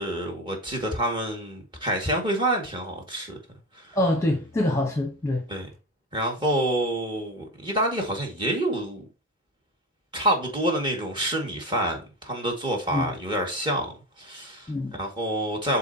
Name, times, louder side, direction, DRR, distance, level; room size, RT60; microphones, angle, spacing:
voice 1, 0.0-3.4 3.7-4.0 5.5-5.7 6.1-9.0 10.1-15.8, right 1 dB, 25° right, 2.0 m, -27 dB
voice 2, 3.9-5.5 12.9-13.1 14.7-15.0, left 1 dB, 15° left, 1.0 m, -25 dB
11.5 x 4.1 x 2.8 m
head